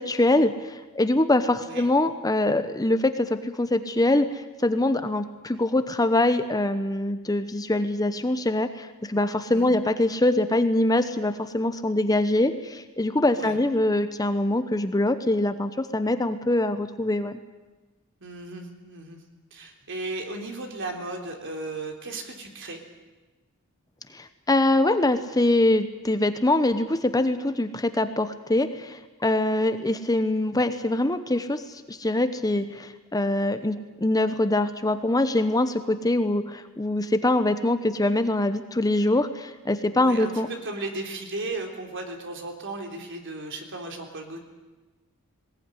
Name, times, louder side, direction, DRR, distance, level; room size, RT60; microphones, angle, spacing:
voice 1, 0.0-17.4 24.1-40.5, left 1 dB, 15° left, 10 dB, 0.9 m, -24 dB
voice 2, 18.2-19.2 19.5-22.8 40.0-44.4, right 2 dB, 55° right, 3 dB, 3.4 m, -35 dB
20.5 x 18.0 x 9.8 m, 1.2 s
head